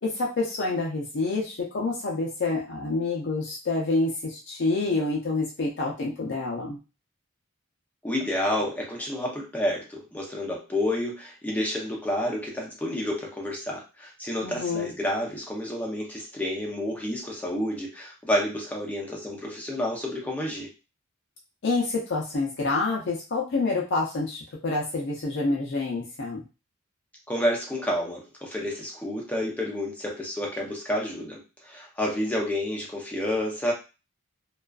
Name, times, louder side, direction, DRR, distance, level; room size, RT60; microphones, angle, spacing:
voice 1, 0.0-6.8 14.4-14.9 21.6-26.4, left 3 dB, 55° left, -2 dB, 0.5 m, -27 dB
voice 2, 8.0-20.7 27.3-33.7, left 1 dB, 5° left, -2 dB, 0.6 m, -29 dB
2.3 x 2.3 x 2.3 m, 0.31 s
head